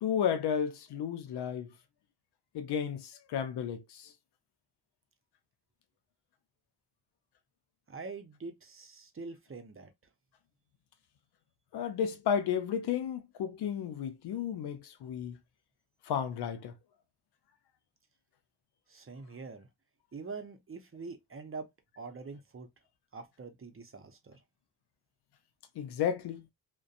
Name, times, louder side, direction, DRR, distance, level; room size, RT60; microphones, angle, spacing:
voice 1, 0.0-1.7 2.5-3.8 11.7-15.4 16.1-16.7 25.8-26.4, left 8 dB, 85° left, 0.6 m, -32 dB
voice 2, 7.9-9.9 18.9-19.7 20.1-21.7 22.0-22.7 23.1-24.4, right 4 dB, 35° right, 0.7 m, -44 dB
2.5 x 2.2 x 2.4 m
cardioid pair, 45°, 39 cm